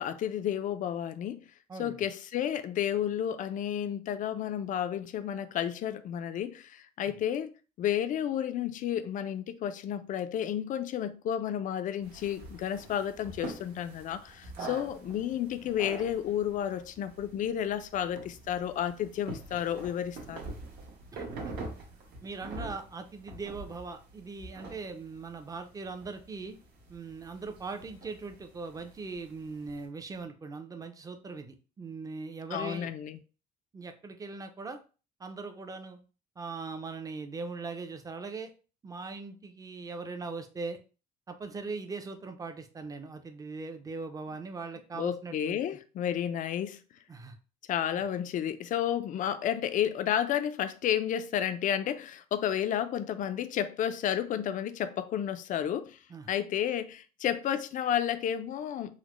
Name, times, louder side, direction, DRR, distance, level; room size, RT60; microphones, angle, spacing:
voice 1, 0.0-1.4 1.8-7.5 7.8-20.5 32.5-33.2 44.9-46.8 47.7-56.0 56.3-59.0, left 10 dB, 50° left, 0.4 m, -31 dB
voice 2, 1.7-2.0 14.6-14.8 21.1-21.3 22.2-26.6 26.9-32.9 33.7-34.8 35.2-36.0 36.4-38.5 38.8-40.8 41.3-45.6 47.1-47.3 47.9-48.0 56.1-56.3, right 4 dB, 20° right, 0.5 m, -40 dB
sound 1, 12.0-29.8, right 2 dB, 70° right, 1.2 m, -45 dB
3.9 x 2.1 x 3.0 m
cardioid pair, 110°, 17 cm